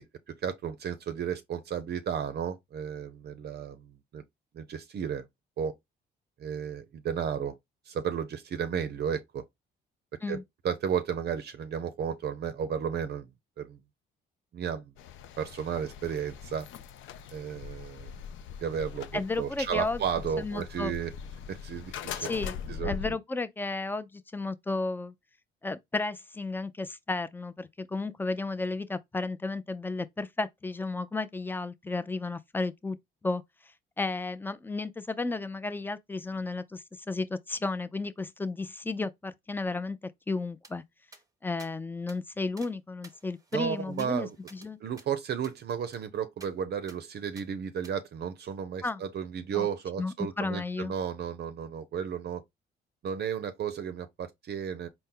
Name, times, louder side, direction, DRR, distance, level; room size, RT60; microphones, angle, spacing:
voice 1, 0.0-4.2 4.5-5.3 5.6-5.7 6.4-7.6 7.9-9.4 10.3-10.4 10.6-13.3 13.6-13.8 14.5-14.9 15.4-16.7 17.3-18.1 18.6-21.1 21.5-22.3 22.7-23.0 43.5-44.4 44.8-52.4 53.0-54.9, right 8 dB, 55° right, 0.5 m, -33 dB
sound 1, 15.0-23.1, left 7 dB, 75° left, 0.5 m, -41 dB
voice 2, 19.1-20.0 20.4-20.9 22.2-25.1 25.6-33.0 33.2-33.4 34.0-40.8 41.4-44.8 48.8-49.0 49.5-49.7 50.0-50.9, left 3 dB, 10° left, 0.4 m, -33 dB
sound 2, 40.6-40.7 41.1-41.2 41.6-41.7 42.1-42.2 42.6-42.7 43.0-44.7 45.0-45.1 45.4-45.6 45.9-46.0 46.4-46.5 46.9-47.0 47.4-47.5 47.8-47.9, right 3 dB, 15° right, 0.8 m, -53 dB
4.2 x 2.1 x 3.6 m
cardioid pair, 90°, 20 cm